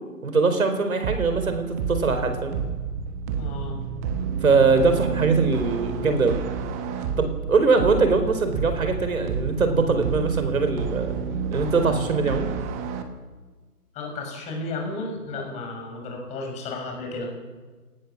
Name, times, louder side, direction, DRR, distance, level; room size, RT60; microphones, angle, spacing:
voice 1, 0.2-2.6 4.4-6.4 7.2-11.1 11.5-12.5, right 4 dB, 60° right, 8 dB, 4.8 m, -22 dB
sound 1, 1.0-13.0, right 6 dB, 10° right, 1.0 m, -30 dB
voice 2, 3.4-3.8 13.9-17.3, left 2 dB, 15° left, 2 dB, 6.4 m, -33 dB
28.5 x 19.0 x 7.5 m, 1.4 s
figure-of-eight pair, 145°, 46 cm